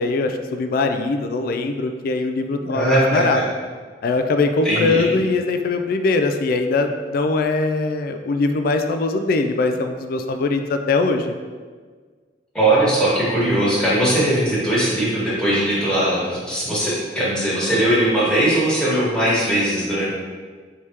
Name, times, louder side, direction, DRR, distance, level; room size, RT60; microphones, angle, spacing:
voice 1, 0.0-3.4 4.0-11.3, left 3 dB, 55° left, 6 dB, 0.3 m, -21 dB
voice 2, 2.7-3.4 4.6-5.1 12.5-20.1, right 1 dB, 5° left, -9 dB, 1.4 m, -19 dB
4.7 x 3.4 x 2.9 m, 1.5 s
head